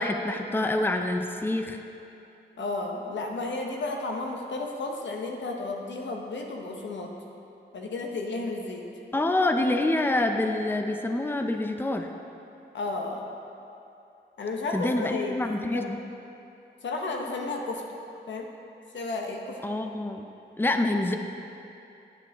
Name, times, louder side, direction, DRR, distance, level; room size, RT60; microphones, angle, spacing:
voice 1, 0.0-1.8 9.1-12.1 14.7-16.0 19.6-20.3 20.6-21.1, left 2 dB, 10° left, 5 dB, 0.6 m, -26 dB
voice 2, 2.6-7.1 7.7-8.8 12.7-13.3 14.4-15.9 16.8-17.8 18.3-18.5 18.9-19.6, left 3 dB, 85° left, 1 dB, 0.9 m, -33 dB
9.3 x 8.4 x 3.5 m, 2.7 s
cardioid pair, 60°, 18 cm